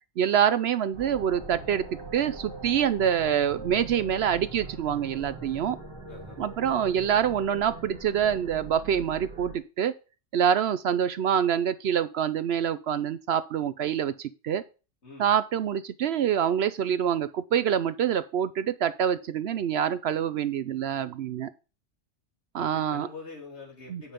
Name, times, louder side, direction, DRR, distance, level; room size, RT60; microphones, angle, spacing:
voice 1, 0.2-1.9 2.1-5.8 6.4-9.9 10.3-14.6 15.2-21.5 22.5-23.1 23.9-24.0, right 9 dB, 65° right, 14 dB, 0.8 m, -26 dB
sound 1, 0.9-9.6, right 3 dB, 25° right, 1.8 m, -42 dB
voice 2, 6.1-6.4 15.0-15.3 22.6-24.1, left 3 dB, 65° left, -1 dB, 3.3 m, -44 dB
9.4 x 5.6 x 5.1 m, 0.33 s
omnidirectional pair, 1.3 m